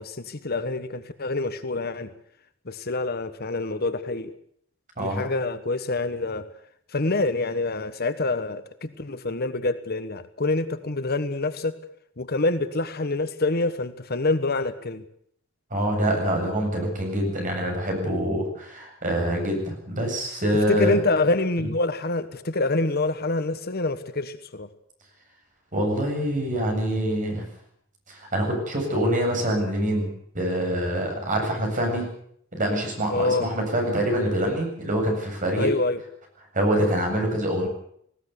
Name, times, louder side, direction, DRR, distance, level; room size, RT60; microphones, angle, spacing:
voice 1, 0.0-2.1 2.6-4.3 5.0-6.5 6.9-11.8 12.2-15.0 20.7-24.7 33.1-33.5 35.6-36.0, left 2 dB, 50° left, 11 dB, 1.3 m, -26 dB
voice 2, 15.7-21.0 21.6-21.7 25.7-27.4 28.1-30.1 30.3-32.0 32.5-35.7 36.5-37.7, equal, 40° right, 2 dB, 7.9 m, -25 dB
19.0 x 17.5 x 8.3 m, 0.67 s
head